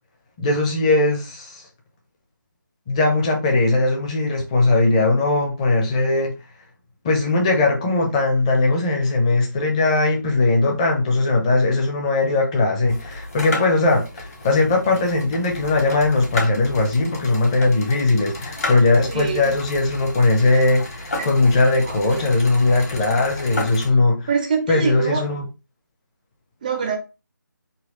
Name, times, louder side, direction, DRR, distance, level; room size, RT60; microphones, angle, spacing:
voice 1, 0.4-1.6 2.9-6.3 7.0-24.3 24.7-25.4, left 2 dB, 20° left, 0.8 m, -19 dB
sound 1, 12.9-23.9, left 2 dB, 50° left, 1.7 m, -33 dB
voice 2, 19.1-19.5 21.8-21.9 24.3-25.2 26.6-27.0, right 6 dB, 25° right, 0.5 m, -24 dB
4.2 x 2.3 x 3.8 m
figure-of-eight pair, 155°, 11 cm